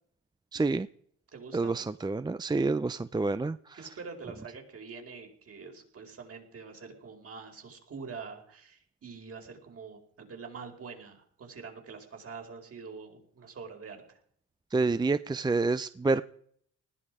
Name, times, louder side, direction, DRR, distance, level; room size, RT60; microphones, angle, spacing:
voice 1, 0.5-0.9 1.5-3.8 14.7-16.2, right 3 dB, 15° right, 14 dB, 0.6 m, -28 dB
voice 2, 1.3-1.8 3.7-14.2, right 5 dB, 50° right, 4 dB, 5.0 m, -45 dB
20.0 x 14.5 x 5.0 m, 0.63 s
cardioid pair, 90°, 30 cm